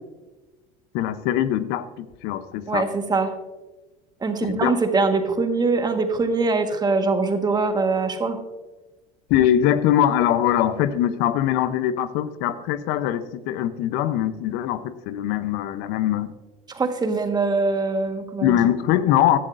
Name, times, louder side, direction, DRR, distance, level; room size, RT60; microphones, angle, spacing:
voice 1, 0.9-2.9 4.4-4.7 9.3-16.3 18.4-19.4, left 11 dB, 65° left, 13 dB, 0.7 m, -22 dB
voice 2, 2.7-3.3 4.2-8.4 16.7-18.6, right 3 dB, 20° right, 6 dB, 1.4 m, -23 dB
16.0 x 11.0 x 2.6 m, 1.1 s
supercardioid pair, 95°, 18 cm